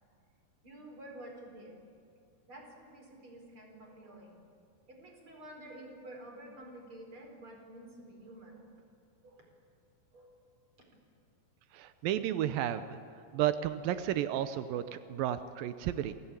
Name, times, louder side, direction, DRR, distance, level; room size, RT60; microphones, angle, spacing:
voice 1, 0.6-1.8 2.4-4.4 4.9-8.7 9.2-9.5 10.1-10.3, right 1 dB, 35° right, 2 dB, 4.9 m, -50 dB
voice 2, 11.7-13.0 13.3-16.1, right 11 dB, 85° right, 12 dB, 2.6 m, -32 dB
28.0 x 17.0 x 8.8 m, 2.4 s
omnidirectional pair, 4.0 m